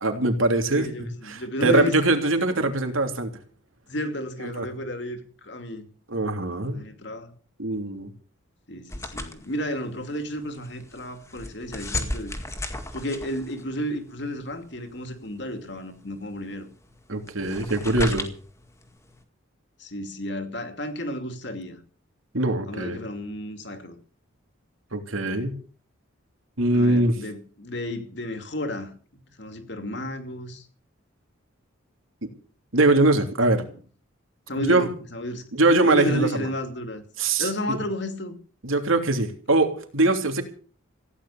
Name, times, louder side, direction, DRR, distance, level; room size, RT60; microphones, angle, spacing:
voice 1, 0.0-0.9 1.3-3.3 4.4-4.7 6.1-6.8 7.6-8.1 17.1-18.3 22.3-23.0 24.9-25.6 26.6-27.1 32.2-32.3 32.7-33.6 34.6-34.9 35.5-36.5 37.2-37.8 38.6-40.4, right 2 dB, 80° right, 3.1 m, -22 dB
voice 2, 0.7-2.0 3.9-5.9 6.7-7.3 8.7-12.3 12.9-16.7 19.8-21.8 22.7-24.0 26.7-28.9 29.4-30.7 33.5-33.7 34.5-35.4 35.8-37.0 37.4-38.4, left 1 dB, 55° left, 2.6 m, -32 dB
sound 1, 8.9-19.2, left 2 dB, 15° left, 1.9 m, -36 dB
16.0 x 10.5 x 7.2 m
head